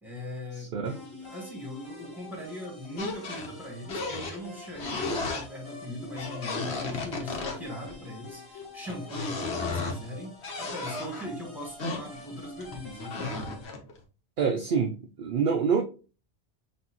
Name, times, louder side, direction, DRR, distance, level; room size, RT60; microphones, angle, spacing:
voice 1, 0.0-13.6, equal, ahead, 0 dB, 1.5 m, -40 dB
voice 2, 0.6-0.9 14.4-15.8, right 6 dB, 60° right, 3 dB, 0.7 m, -26 dB
sound 1, 0.8-13.6, left 3 dB, 20° left, 2.1 m, -47 dB
sound 2, 3.0-3.5 3.9-4.4 4.7-5.4 6.1-7.9 8.6-10.0 10.4-11.3 11.8-14.0, left 3 dB, 75° left, 1.3 m, -34 dB
6.0 x 2.7 x 2.9 m, 0.35 s
omnidirectional pair, 1.1 m